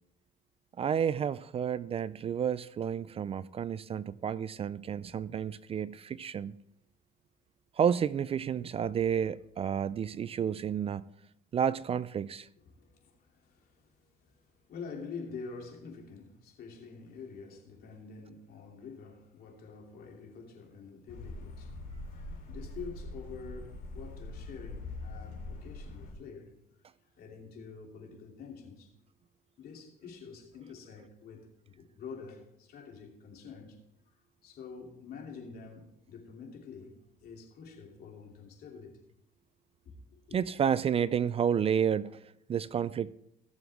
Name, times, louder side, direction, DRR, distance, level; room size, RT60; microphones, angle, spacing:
voice 1, 0.8-6.6 7.8-11.0 11.5-12.5 40.3-42.2 42.5-43.1, right 8 dB, 35° right, 0.4 m, -30 dB
voice 2, 12.7-21.8 22.5-26.6 27.2-28.9 29.6-33.8 34.4-39.0 39.8-40.4, left 5 dB, 65° left, 2.8 m, -47 dB
sound 1, 21.1-26.1, left 2 dB, 85° left, 3.5 m, -43 dB
18.0 x 7.1 x 3.5 m
cardioid pair, 110°, 17 cm